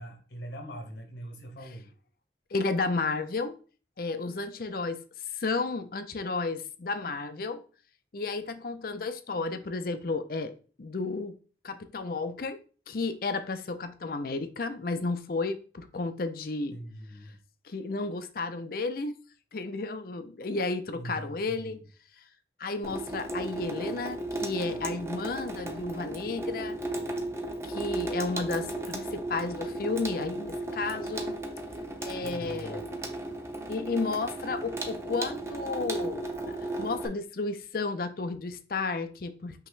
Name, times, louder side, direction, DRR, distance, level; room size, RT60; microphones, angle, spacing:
voice 1, 0.0-1.9 16.7-17.4 20.9-21.8 32.2-32.9, right 1 dB, 70° left, 2 dB, 1.4 m, -42 dB
voice 2, 2.5-3.6 4.0-5.0 5.3-7.6 8.1-10.5 10.8-11.3 11.6-12.6 12.9-16.8 17.6-19.1 19.5-21.8 22.6-26.8 27.6-31.3 32.0-32.8 33.7-36.2 36.5-39.7, left 3 dB, 50° left, 10 dB, 0.5 m, -32 dB
Water tap faucet / Sink (filling or washing), 22.8-37.1, right 1 dB, 15° right, 0.5 m, -35 dB
5.6 x 2.9 x 3.2 m, 0.39 s
head